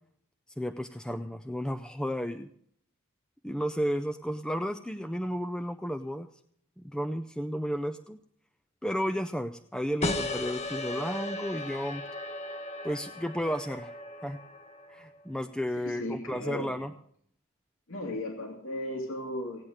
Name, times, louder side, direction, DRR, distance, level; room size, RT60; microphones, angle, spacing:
voice 1, 0.6-2.5 3.4-6.3 6.8-8.2 8.8-12.0 12.8-14.0 14.2-14.4 14.9-16.9, equal, 5° left, 7 dB, 0.5 m, -33 dB
sound 1, 10.0-15.2, left 2 dB, 30° left, 1.0 m, -36 dB
voice 2, 15.8-16.8 17.9-19.6, left 1 dB, 80° left, 1 dB, 2.6 m, -36 dB
17.5 x 8.9 x 6.5 m, 0.64 s
head